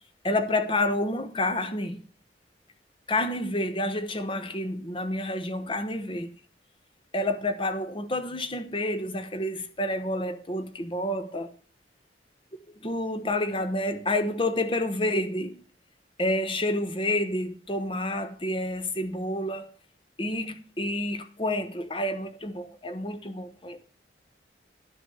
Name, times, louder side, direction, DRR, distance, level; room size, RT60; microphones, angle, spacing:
voice 1, 0.2-2.0 3.1-6.3 7.1-11.5 12.8-15.6 16.2-19.7 20.2-23.8, left 1 dB, 30° left, 1.1 m, -29 dB
11.5 x 6.1 x 6.4 m
head